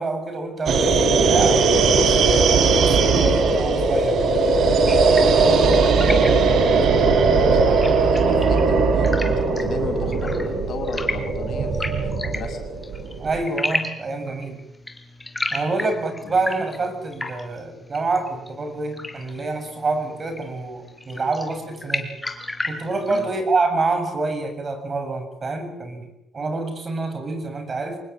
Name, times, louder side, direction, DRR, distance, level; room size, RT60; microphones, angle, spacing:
voice 1, 0.0-2.2 2.8-4.4 13.2-14.6 15.5-22.1 22.6-28.0, right 3 dB, 40° right, 7 dB, 7.9 m, -27 dB
sound 1, 0.7-13.4, right 4 dB, 65° right, 3.6 m, -19 dB
voice 2, 3.0-3.4 5.6-12.6 15.8-15.9 16.2-16.3 23.1-23.3, left 3 dB, 65° left, 5 dB, 6.6 m, -35 dB
sound 2, 4.9-23.3, left 2 dB, 15° left, 4.3 m, -34 dB
25.5 x 20.5 x 9.2 m, 0.80 s
cardioid pair, 90°, 0 cm